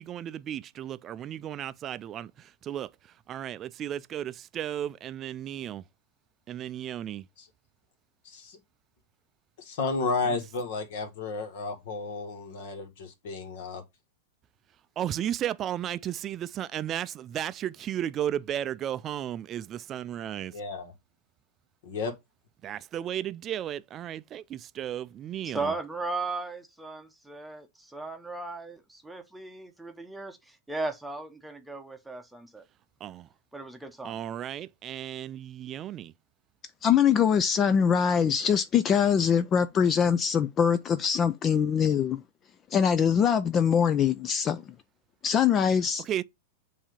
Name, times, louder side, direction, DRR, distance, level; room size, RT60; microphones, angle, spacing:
voice 1, 0.0-5.8 6.5-7.2 10.2-10.4 15.0-20.6 22.6-25.7 33.0-33.3 34.0-36.1 46.0-46.2, right 11 dB, 30° right, 0.4 m, -34 dB
voice 2, 8.3-8.6 9.6-13.8 20.5-20.9 21.8-22.1, left 3 dB, 65° left, 1.8 m, -32 dB
voice 3, 25.4-32.6 33.5-34.2, right 3 dB, 5° right, 0.8 m, -36 dB
voice 4, 36.8-42.2 42.7-44.6 45.2-46.0, left 7 dB, 30° left, 0.4 m, -23 dB
7.3 x 2.8 x 5.0 m
hypercardioid pair, 115°, 0 cm